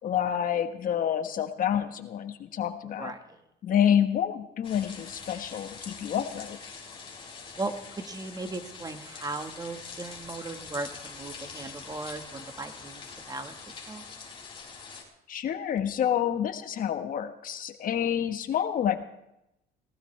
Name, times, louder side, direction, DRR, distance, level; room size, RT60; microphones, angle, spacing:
voice 1, 0.0-3.1 3.6-6.6 15.3-19.0, left 9 dB, 55° left, 8 dB, 1.4 m, -28 dB
sound 1, 4.6-15.0, left 5 dB, 30° left, 4.4 m, -44 dB
voice 2, 7.6-13.0 13.3-13.5 13.9-14.0, right 3 dB, 20° right, 7 dB, 1.5 m, -37 dB
19.0 x 19.0 x 3.4 m, 0.84 s
cardioid pair, 110°, 17 cm